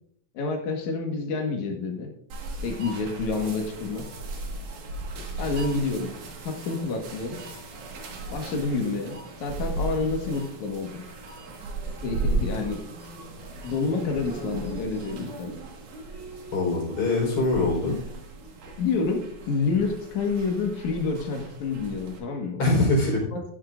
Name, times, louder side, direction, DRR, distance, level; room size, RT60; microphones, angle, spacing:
voice 1, 0.3-2.1 2.6-4.0 5.4-6.1 6.4-7.4 8.3-11.0 12.0-12.8 13.6-15.6 18.8-22.6 23.3-23.4, left 4 dB, 75° left, 2 dB, 3.0 m, -28 dB
sound 1, 2.3-22.2, right 3 dB, 85° right, 3.3 m, -36 dB
voice 2, 16.5-18.0 22.6-23.2, left 2 dB, 50° left, -1 dB, 5.3 m, -23 dB
13.0 x 11.0 x 2.6 m, 0.66 s
omnidirectional pair, 3.4 m